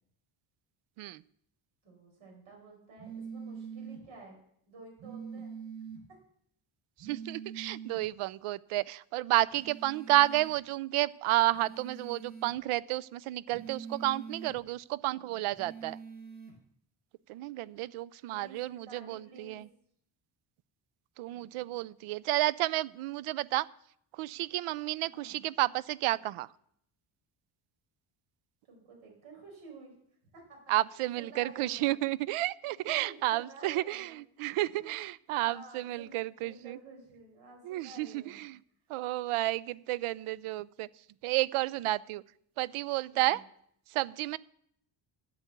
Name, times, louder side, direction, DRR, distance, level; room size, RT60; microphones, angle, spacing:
voice 1, 1.8-4.4 4.7-5.6 6.1-6.2 18.3-19.7 25.0-25.5 28.7-29.9 30.3-32.0 32.6-34.2 34.8-35.0 35.4-36.1 36.4-38.5 43.1-43.4, right 3 dB, 70° right, 1 dB, 5.2 m, -51 dB
sound 1, 3.0-4.0 5.0-6.0 7.0-8.0 9.5-10.6 11.5-12.6 13.5-14.6 15.5-16.6, right 6 dB, 20° right, 1.7 m, -44 dB
voice 2, 7.0-16.0 17.3-19.7 21.2-23.7 24.2-26.5 30.7-34.1 34.4-36.8 37.6-38.6 38.9-40.9 41.2-42.2 42.6-43.4 43.9-44.4, right 16 dB, 85° right, 21 dB, 0.6 m, -31 dB
9.7 x 8.3 x 8.0 m, 0.69 s
cardioid pair, 175°, 49 cm